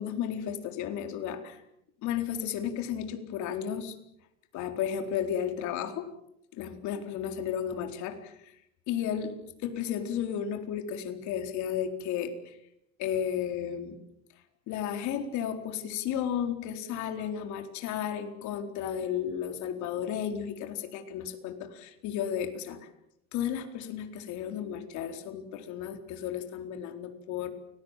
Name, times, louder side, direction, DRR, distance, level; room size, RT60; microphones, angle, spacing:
voice 1, 0.0-1.6 2.0-4.0 4.5-6.1 6.5-8.6 8.9-12.6 13.0-14.0 14.7-22.9 23.3-27.5, left 9 dB, 60° left, 6 dB, 4.3 m, -33 dB
29.5 x 20.5 x 7.6 m, 0.80 s
cardioid pair, 135°, 33 cm